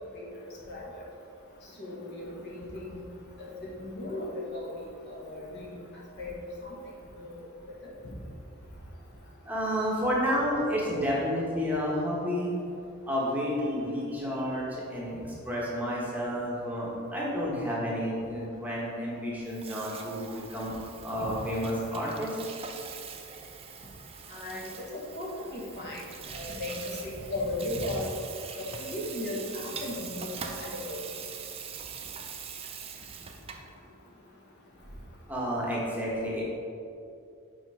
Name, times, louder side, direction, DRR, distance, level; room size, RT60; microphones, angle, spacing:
voice 1, 0.7-1.0 1.8-3.0 3.4-4.7 5.1-5.8 6.2-6.3 7.2-7.3 21.2-21.3 24.3-26.0 26.3-28.1 28.6-31.0, left 1 dB, 50° left, -4 dB, 1.3 m, -36 dB
voice 2, 9.4-12.5 13.0-15.1 15.4-22.4 35.3-36.4, equal, 5° right, -6 dB, 1.1 m, -30 dB
Water tap faucet / Sink (filling or washing), 19.4-33.7, right 6 dB, 25° right, 0.4 m, -43 dB
6.4 x 4.3 x 4.8 m, 2.6 s
head